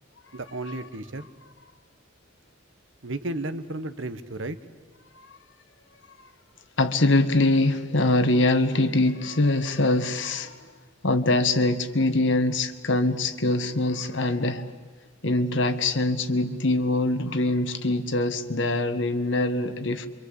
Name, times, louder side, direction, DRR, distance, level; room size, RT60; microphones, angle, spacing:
voice 1, 0.3-1.3 3.0-4.6, right 2 dB, 70° right, 12 dB, 1.3 m, -33 dB
voice 2, 6.8-10.7 11.0-14.7 15.2-20.1, left 2 dB, 65° left, 10 dB, 1.6 m, -23 dB
27.5 x 25.0 x 8.3 m, 1.4 s
head